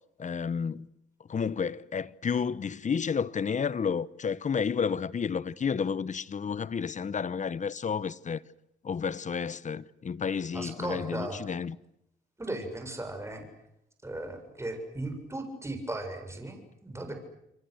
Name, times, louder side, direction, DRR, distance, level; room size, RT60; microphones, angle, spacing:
voice 1, 0.2-0.9 1.2-8.4 8.8-11.8, left 6 dB, 40° left, 1.1 m, -31 dB
voice 2, 10.5-11.4 12.4-13.5 14.0-17.1, right 2 dB, 15° right, 7.4 m, -37 dB
29.0 x 24.0 x 8.0 m
cardioid pair, 90°, 20 cm